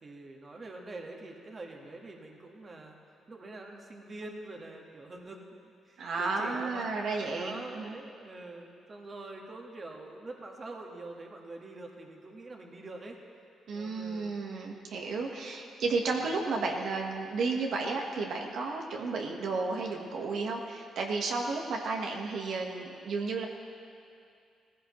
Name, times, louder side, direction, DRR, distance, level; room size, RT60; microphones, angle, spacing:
voice 1, 0.0-3.0 3.3-6.9 7.3-13.2 13.7-14.3 16.1-16.2, right 2 dB, 35° right, 1 dB, 1.5 m, -45 dB
voice 2, 6.0-8.0 13.7-23.4, right 3 dB, 70° right, 0 dB, 1.4 m, -33 dB
18.5 x 15.0 x 3.1 m, 2.5 s
cardioid pair, 105°, 0 cm